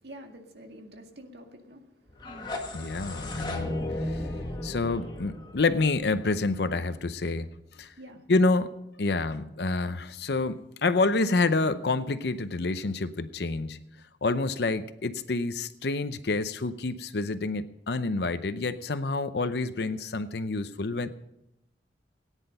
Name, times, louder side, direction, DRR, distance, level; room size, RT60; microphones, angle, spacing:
voice 1, 0.0-3.2 8.0-8.2, equal, 65° right, 3 dB, 2.0 m, -49 dB
sound 1, 2.1-7.0, left 1 dB, 25° left, 1.8 m, -35 dB
voice 2, 2.7-4.3 4.6-7.5 7.8-7.9 8.3-8.7 9.0-13.8 14.2-21.2, left 3 dB, 65° left, 12 dB, 0.7 m, -28 dB
18.0 x 9.9 x 5.5 m, 0.84 s
head